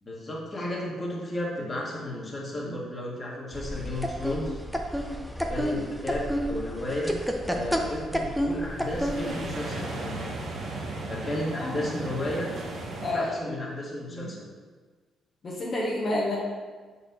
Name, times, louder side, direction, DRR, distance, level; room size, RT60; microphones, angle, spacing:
voice 1, 0.0-4.6 5.5-10.2 11.1-12.6 13.1-14.5, left 1 dB, 25° left, -4 dB, 1.7 m, -33 dB
sound 1, 3.5-9.5, equal, ahead, 0.6 m, -30 dB
sound 2, 8.6-13.1, right 2 dB, 55° right, 1.1 m, -36 dB
voice 2, 11.5-11.9 13.0-13.6 14.1-14.3 15.4-16.4, left 1 dB, 45° left, -6 dB, 1.2 m, -30 dB
6.1 x 4.2 x 4.2 m, 1.4 s
cardioid pair, 90°, 0 cm